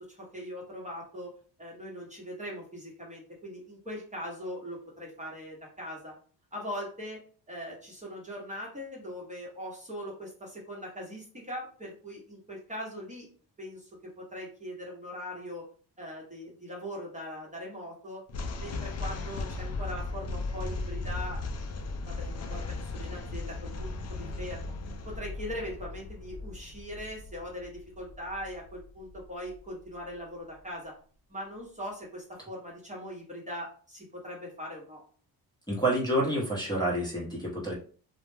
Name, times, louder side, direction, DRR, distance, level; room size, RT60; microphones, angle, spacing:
voice 1, 0.1-1.3 1.6-6.1 6.5-13.3 13.6-15.7 16.0-18.2 18.6-21.5 22.1-24.7 25.0-30.9 31.3-35.0, equal, 20° right, -3 dB, 1.0 m, -41 dB
sound 1, 18.3-29.6, left 3 dB, 40° left, 0.4 m, -37 dB
voice 2, 35.7-37.7, right 1 dB, 10° left, -5 dB, 0.9 m, -28 dB
2.3 x 2.1 x 3.3 m, 0.42 s
cardioid pair, 95°, 40 cm